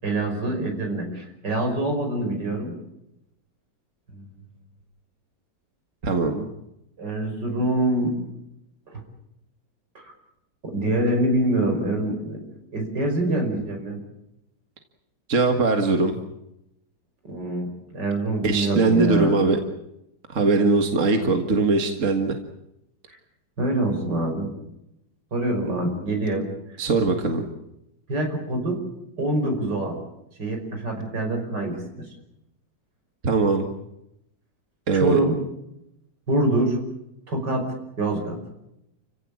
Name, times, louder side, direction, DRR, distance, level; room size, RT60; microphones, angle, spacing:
voice 1, 0.0-2.8 4.1-4.3 7.0-8.2 8.9-9.0 10.0-10.1 10.6-12.4 12.7-14.0 17.2-19.3 23.6-24.5 25.3-26.5 28.1-28.8 29.2-30.0 30.4-32.0 34.9-35.4 36.3-36.8 37.3-38.4, right 1 dB, 70° right, 3 dB, 6.1 m, -25 dB
voice 2, 6.0-6.5 15.3-16.2 18.4-19.6 20.3-22.4 26.8-27.4 33.2-33.7 34.9-35.2, right 3 dB, 45° right, 4 dB, 2.1 m, -21 dB
29.5 x 16.5 x 8.6 m, 0.85 s
omnidirectional pair, 1.9 m